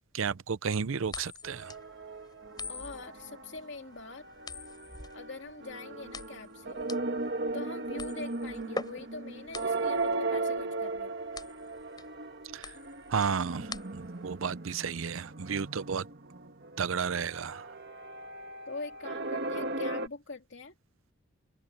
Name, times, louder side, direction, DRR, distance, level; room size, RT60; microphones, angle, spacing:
voice 1, 0.1-1.7 12.5-12.8 13.1-16.1 16.8-17.7, right 6 dB, 80° right, 0.6 m, -32 dB
sound 1, 1.1-14.3, left 3 dB, 20° left, 7.0 m, -44 dB
sound 2, 1.4-3.7 4.0-20.1, right 3 dB, 55° right, 1.8 m, -37 dB
voice 2, 2.7-4.3 5.1-6.8 7.5-11.1 18.7-20.7, left 3 dB, 60° left, 2.4 m, -44 dB
head